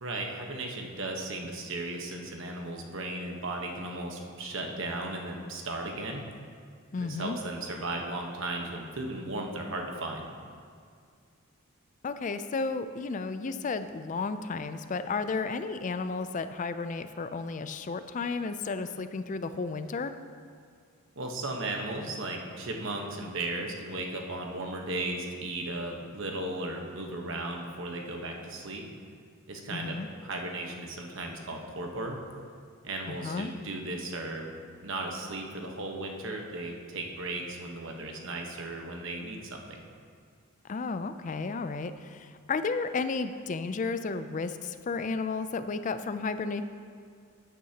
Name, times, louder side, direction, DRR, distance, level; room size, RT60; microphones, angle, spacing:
voice 1, 0.0-6.3 7.0-10.3 21.2-28.9 29.5-32.2 32.8-34.5 34.8-39.8, right 2 dB, 60° right, 1 dB, 1.1 m, -36 dB
voice 2, 6.9-7.4 12.0-20.1 29.7-30.1 33.1-33.5 40.7-46.6, left 4 dB, 35° left, 11 dB, 0.3 m, -33 dB
13.0 x 9.3 x 2.9 m, 2.2 s
head